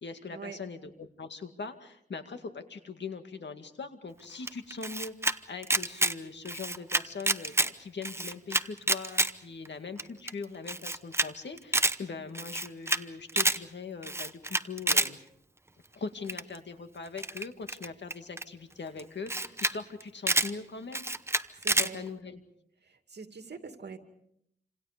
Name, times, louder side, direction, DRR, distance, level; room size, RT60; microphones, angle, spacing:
voice 1, 0.0-15.2 15.9-21.0 21.8-22.4, left 4 dB, 85° left, 7 dB, 2.2 m, -41 dB
Camera, 4.5-5.3 5.6-6.1 6.4-7.7 8.0-9.3 9.6-9.7 10.0-10.1 10.3-10.4 10.7-11.3 11.6-11.9 12.3-13.0 13.3-13.6 14.0-15.1 16.3-16.6 17.2-18.4 19.0-19.1 19.3-19.7 20.0-20.5 20.9-21.9, right 2 dB, 15° right, 0.9 m, -28 dB
voice 2, 21.6-22.0 22.8-24.0, right 5 dB, 70° right, 6 dB, 2.5 m, -44 dB
28.5 x 26.5 x 5.2 m, 0.73 s
wide cardioid pair, 95°, 18 cm